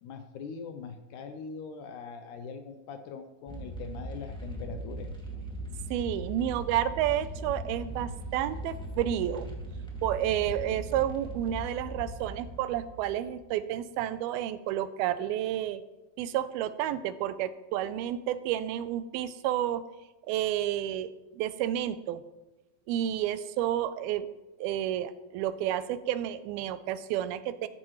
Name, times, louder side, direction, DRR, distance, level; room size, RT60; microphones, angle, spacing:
voice 1, 0.0-5.1, left 5 dB, 75° left, 7 dB, 1.8 m, -42 dB
sound 1, 3.5-13.5, right 1 dB, 5° left, 0.7 m, -39 dB
voice 2, 5.9-9.5 10.0-15.8 16.2-19.8 20.3-22.2 22.9-24.3 24.6-27.7, right 11 dB, 85° right, 13 dB, 2.5 m, -30 dB
14.0 x 13.5 x 3.1 m, 1.1 s
omnidirectional pair, 4.3 m